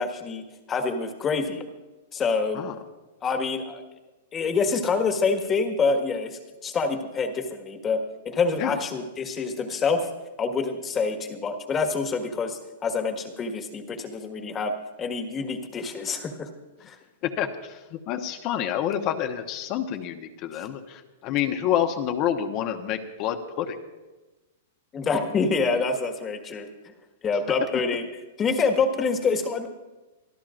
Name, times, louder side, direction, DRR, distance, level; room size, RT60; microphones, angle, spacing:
voice 1, 0.0-1.6 2.1-2.6 3.2-3.8 4.3-10.1 10.4-14.7 15.0-16.5 16.9-17.0 20.5-20.7 24.9-26.9 27.2-28.1 28.4-29.7, left 4 dB, 20° left, 5 dB, 1.6 m, -26 dB
voice 2, 17.2-17.8 18.1-23.8, left 10 dB, 40° left, 5 dB, 1.1 m, -28 dB
25.5 x 13.0 x 2.6 m, 1.1 s
hypercardioid pair, 140°, 0 cm